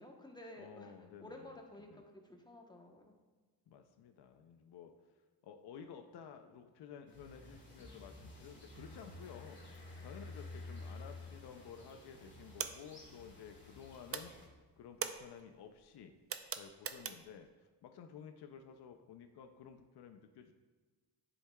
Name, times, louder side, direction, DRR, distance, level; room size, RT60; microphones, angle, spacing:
voice 1, 0.0-0.9 1.2-3.1, left 1 dB, 10° left, 1 dB, 0.9 m, -53 dB
voice 2, 0.6-1.6 1.9-2.0 3.7-14.3 14.8-16.1 16.5-20.5, left 7 dB, 70° left, 6 dB, 0.5 m, -53 dB
sound 1, 7.1-14.5, left 2 dB, 25° left, 1.8 m, -52 dB
sound 2, 11.7-11.8 12.1-13.8 14.1-17.5, right 7 dB, 35° right, 0.4 m, -43 dB
9.8 x 4.7 x 2.2 m, 1.3 s
cardioid pair, 90°, 41 cm